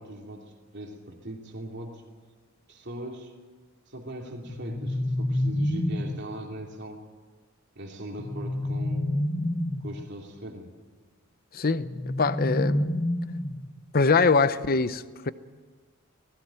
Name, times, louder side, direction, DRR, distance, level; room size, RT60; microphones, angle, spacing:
voice 1, 0.0-2.0 2.7-3.3 3.9-7.1 7.7-9.1 9.8-10.7, right 1 dB, 55° right, 2.9 m, -40 dB
sound 1, 4.5-6.3 8.1-10.0 11.9-13.8, left 1 dB, 25° left, 1.2 m, -28 dB
voice 2, 11.5-13.0 13.9-15.3, left 4 dB, 45° left, 0.7 m, -24 dB
19.0 x 17.0 x 9.0 m
head